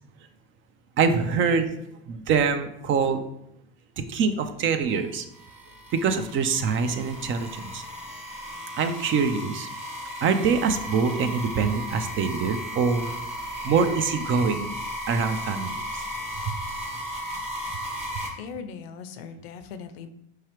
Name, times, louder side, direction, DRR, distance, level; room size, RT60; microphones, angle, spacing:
voice 1, 1.0-1.7 2.1-3.2 4.0-5.2 5.9-7.8 8.8-9.7 10.2-13.1 13.6-14.7 15.1-16.1 16.5-16.6, right 5 dB, 40° right, 9 dB, 0.5 m, -24 dB
sound 1, 4.9-18.3, equal, 20° right, 1.1 m, -35 dB
voice 2, 18.4-20.1, left 6 dB, 85° left, 9 dB, 0.5 m, -39 dB
4.7 x 3.1 x 3.0 m, 0.78 s
supercardioid pair, 100°, 30 cm